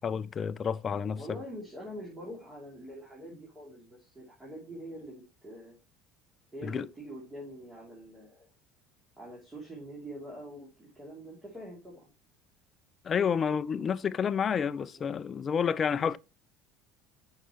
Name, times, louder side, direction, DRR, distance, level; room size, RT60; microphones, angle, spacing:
voice 1, 0.0-1.2 6.6-6.9 13.0-16.2, left 7 dB, 35° left, 0.4 m, -29 dB
voice 2, 1.2-5.8 6.5-8.5 9.2-12.1 14.9-15.1, equal, 15° right, 2.7 m, -45 dB
6.5 x 5.6 x 3.0 m
supercardioid pair, 115°, 0 cm